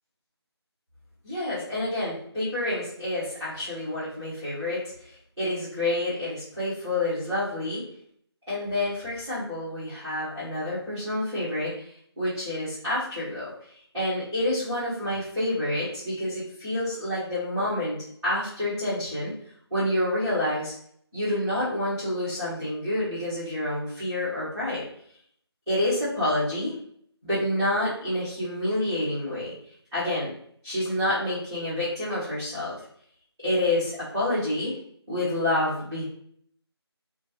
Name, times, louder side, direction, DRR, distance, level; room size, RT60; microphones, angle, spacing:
voice 1, 1.2-7.8 8.5-19.3 19.7-20.7 21.1-24.8 25.7-26.7 27.2-29.5 29.9-30.3 30.6-32.8 33.4-34.8 35.1-36.0, left 1 dB, ahead, -25 dB, 0.5 m, -28 dB
2.3 x 2.0 x 3.0 m, 0.65 s
figure-of-eight pair, 160°, 14 cm